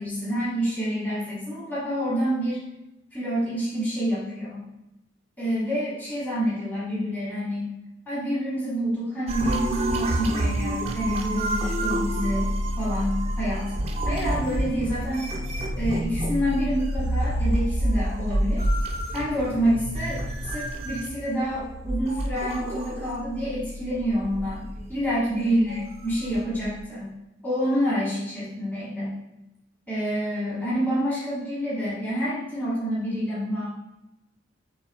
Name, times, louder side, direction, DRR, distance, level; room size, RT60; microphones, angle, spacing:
voice 1, 0.0-2.6 3.1-4.7 5.4-7.7 8.1-13.7 14.0-15.3 15.8-18.7 19.1-27.2 27.4-29.2 29.9-33.6, equal, 10° left, -9 dB, 1.3 m, -27 dB
sound 1, 9.3-26.8, right 1 dB, 35° right, 0.4 m, -28 dB
6.7 x 3.0 x 2.3 m, 0.94 s
head